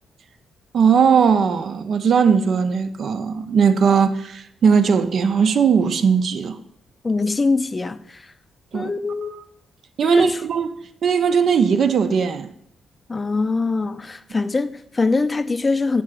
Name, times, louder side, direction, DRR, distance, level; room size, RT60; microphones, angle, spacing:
voice 1, 0.7-6.6 8.7-8.9 9.2-9.3 10.0-10.7 11.0-12.5, right 6 dB, 65° right, 0.6 m, -18 dB
voice 2, 7.0-8.3 8.7-9.4 10.0-10.4 13.1-16.0, left 3 dB, 30° left, 0.5 m, -23 dB
7.5 x 3.4 x 6.2 m
hypercardioid pair, 50°, 0 cm